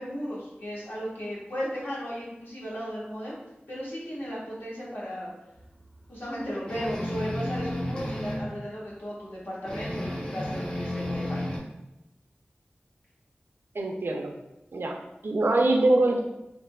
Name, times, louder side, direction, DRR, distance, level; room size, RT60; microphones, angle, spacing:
voice 1, 0.0-3.4 3.7-5.3 6.1-11.4, equal, 70° left, -7 dB, 1.2 m, -35 dB
sound 1, 6.7-8.5 9.6-11.6, left 1 dB, 25° left, 0.6 m, -32 dB
voice 2, 13.7-14.3 14.7-16.2, right 2 dB, 75° right, 3 dB, 0.4 m, -24 dB
3.5 x 2.5 x 2.2 m, 0.92 s
wide cardioid pair, 45°, 4 cm